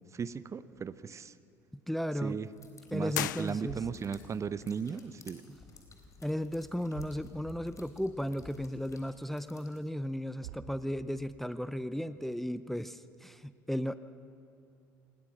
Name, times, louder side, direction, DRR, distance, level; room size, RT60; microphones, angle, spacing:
voice 1, 0.0-1.3 2.2-2.5 2.9-5.4, right 6 dB, 30° right, 16 dB, 0.8 m, -36 dB
sound 1, 0.7-2.3 2.6-2.9 3.4-5.3 5.5-6.2 6.5-6.6 6.8-7.9 8.2-8.3 8.9-9.0 10.0-10.1 10.4-11.4, right 8 dB, 70° right, 1.2 m, -51 dB
voice 2, 1.7-2.4 2.9-3.8 6.2-13.9, equal, ahead, 14 dB, 0.7 m, -35 dB
sound 2, 2.4-9.9, left 4 dB, 30° left, 4.0 m, -56 dB
sound 3, 3.1-4.2, left 13 dB, 75° left, 0.4 m, -37 dB
27.0 x 21.0 x 6.0 m, 2.6 s
figure-of-eight pair, 65°, 10 cm